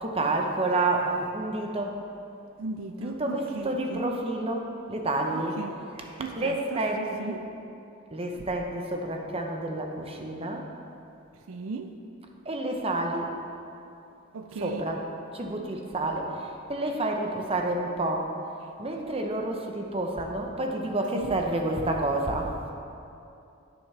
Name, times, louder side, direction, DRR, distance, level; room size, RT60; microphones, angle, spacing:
voice 1, 0.0-2.0 2.9-5.6 5.9-7.4 8.1-10.6 12.4-13.3 14.6-15.0 15.3-18.3 18.8-22.5, right 2 dB, 30° right, 2 dB, 0.8 m, -29 dB
voice 2, 2.6-4.0 5.3-5.8 6.2-7.4 11.5-11.9 14.3-14.9 21.1-21.3, right 4 dB, 75° right, 7 dB, 0.5 m, -37 dB
10.5 x 9.3 x 3.3 m, 2.6 s
head